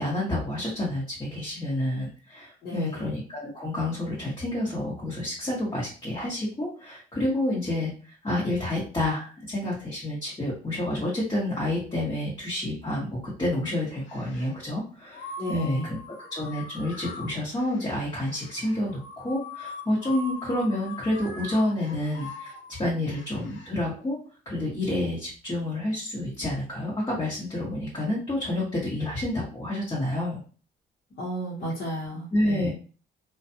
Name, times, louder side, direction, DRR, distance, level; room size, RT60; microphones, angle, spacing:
voice 1, 0.0-22.5 22.8-24.2 24.4-30.4 32.3-32.7, left 1 dB, 25° left, -6 dB, 1.2 m, -29 dB
voice 2, 2.6-3.0 15.4-15.9 31.2-32.7, equal, 50° left, -6 dB, 1.0 m, -33 dB
sound 1, 14.0-14.6 15.1-23.7, left 3 dB, 70° left, 0.6 m, -42 dB
2.4 x 2.3 x 2.7 m, 0.38 s
cardioid pair, 90°, 20 cm